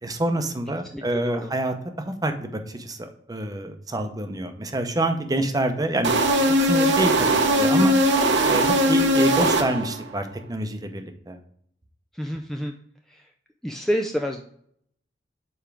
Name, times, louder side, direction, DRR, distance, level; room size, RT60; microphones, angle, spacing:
voice 1, 0.0-6.1 6.6-7.3 7.6-8.0 8.5-11.4, right 1 dB, 20° right, 7 dB, 0.7 m, -27 dB
voice 2, 0.9-1.5 12.1-12.7 13.1-13.3 13.6-14.4, equal, ahead, 2 dB, 0.3 m, -28 dB
sound 1, 6.0-10.1, right 1 dB, 65° right, 0.9 m, -20 dB
7.0 x 4.4 x 3.4 m, 0.67 s
head